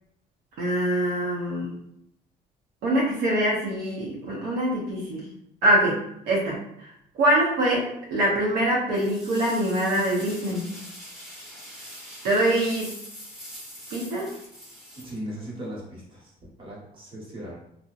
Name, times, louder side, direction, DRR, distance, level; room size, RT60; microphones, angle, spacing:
voice 1, 0.6-1.7 2.8-5.2 5.6-6.0 6.3-6.6 7.2-10.7 12.2-12.9 13.9-14.3, right 1 dB, 80° right, -4 dB, 0.7 m, -24 dB
sound 1, 8.9-15.7, equal, 5° right, 0.7 m, -43 dB
voice 2, 15.0-17.6, equal, 30° right, -5 dB, 1.1 m, -38 dB
2.7 x 2.1 x 2.3 m, 0.76 s
cardioid pair, 110°, 17 cm